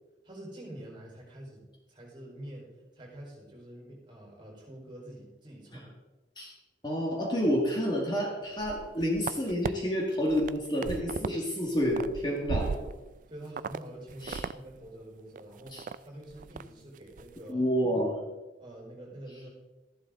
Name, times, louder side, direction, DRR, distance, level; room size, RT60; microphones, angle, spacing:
voice 1, 0.2-1.6 1.9-5.9 12.6-12.9 13.3-15.8 16.0-17.7 18.6-19.5, right 1 dB, 25° right, -2 dB, 4.6 m, -46 dB
voice 2, 6.8-12.6 14.2-14.4 15.7-15.8 17.5-18.2, equal, 25° left, -2 dB, 2.0 m, -29 dB
sound 1, 8.5-9.7 10.1-11.4 11.7-13.2 13.6-13.8 14.1-14.6 14.8-14.9 15.4-16.0 16.3-16.6 17.0-17.3, right 5 dB, 50° right, 0.3 m, -36 dB
13.5 x 11.5 x 3.9 m, 1.1 s
head